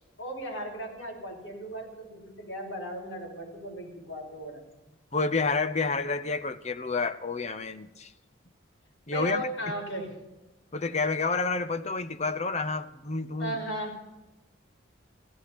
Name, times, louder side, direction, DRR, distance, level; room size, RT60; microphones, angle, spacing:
voice 1, 0.2-4.6 9.1-10.1 13.4-14.0, right 1 dB, 75° left, 5.8 m, -36 dB
voice 2, 5.1-8.1 9.1-9.4 10.7-13.6, left 4 dB, 35° left, 0.7 m, -29 dB
16.0 x 15.0 x 4.2 m
head